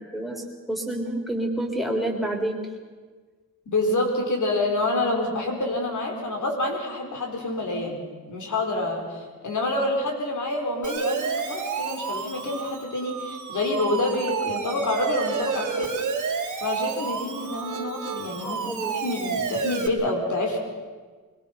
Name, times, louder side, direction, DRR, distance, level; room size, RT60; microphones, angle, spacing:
voice 1, 0.0-2.6 18.4-19.0, right 1 dB, ahead, 3 dB, 3.7 m, -29 dB
voice 2, 3.7-15.9 16.6-20.6, left 2 dB, 60° left, 2 dB, 4.5 m, -27 dB
Siren, 10.8-19.9, right 5 dB, 60° right, 2.5 m, -30 dB
23.0 x 21.5 x 5.8 m, 1.4 s
wide cardioid pair, 110°, 33 cm